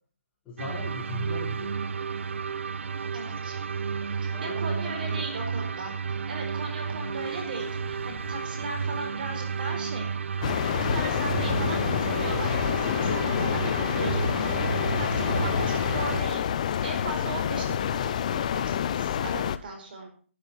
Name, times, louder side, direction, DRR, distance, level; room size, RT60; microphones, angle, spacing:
voice 1, 0.4-2.0 4.3-5.3, left 3 dB, 10° left, -5 dB, 3.9 m, -39 dB
sound 1, 0.6-16.2, right 6 dB, 60° right, 0.8 m, -32 dB
voice 2, 3.1-3.6 4.2-10.1 10.9-20.1, right 2 dB, 40° right, 4 dB, 4.5 m, -38 dB
sound 2, 6.8-9.5 12.0-12.1 12.8-15.9 18.4-18.5, equal, 20° right, 5.2 m, -48 dB
sound 3, 10.4-19.6, left 9 dB, 30° left, 0.6 m, -27 dB
11.5 x 11.5 x 4.2 m, 0.42 s
hypercardioid pair, 165°, 7 cm